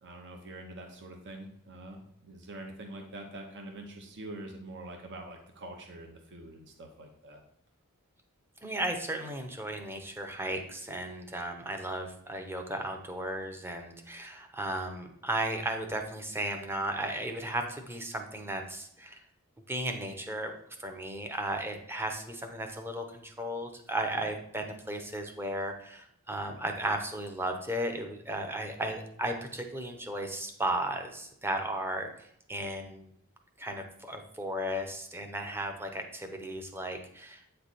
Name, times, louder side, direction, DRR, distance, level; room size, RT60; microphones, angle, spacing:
voice 1, 0.0-7.4, right 1 dB, 55° right, 2 dB, 0.8 m, -45 dB
voice 2, 8.6-19.2 19.7-20.5 20.8-32.1 32.5-33.1 33.6-37.5, right 1 dB, 10° right, 4 dB, 0.7 m, -35 dB
8.2 x 3.3 x 4.1 m, 0.69 s
head